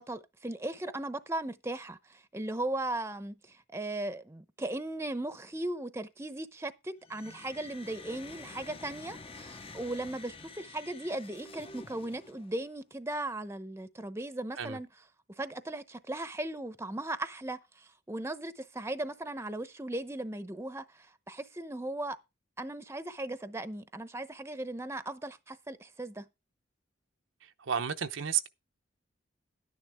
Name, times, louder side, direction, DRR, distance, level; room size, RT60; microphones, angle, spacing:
voice 1, 0.0-14.9 15.4-22.2 22.6-26.2, right 1 dB, 15° right, 0.8 m, -37 dB
sound 1, 7.0-12.7, left 3 dB, 30° left, 0.7 m, -49 dB
voice 2, 27.6-28.5, right 8 dB, 75° right, 0.8 m, -31 dB
11.5 x 9.9 x 3.5 m
head